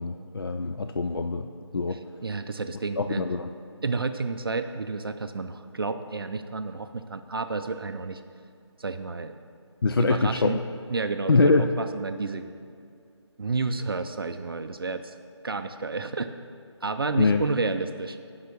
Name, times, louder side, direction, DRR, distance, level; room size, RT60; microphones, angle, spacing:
voice 1, 0.0-1.5 1.7-2.0 3.0-3.5 9.8-10.6 11.3-11.7 17.2-17.4, left 3 dB, 50° left, 6 dB, 0.4 m, -23 dB
voice 2, 1.9-3.2 3.8-8.2 8.8-9.3 10.0-10.6 10.9-12.5 13.4-15.1 15.4-16.3 16.8-18.3, right 3 dB, 50° right, 8 dB, 0.5 m, -31 dB
10.5 x 5.6 x 6.3 m, 2.4 s
figure-of-eight pair, 170°, 15 cm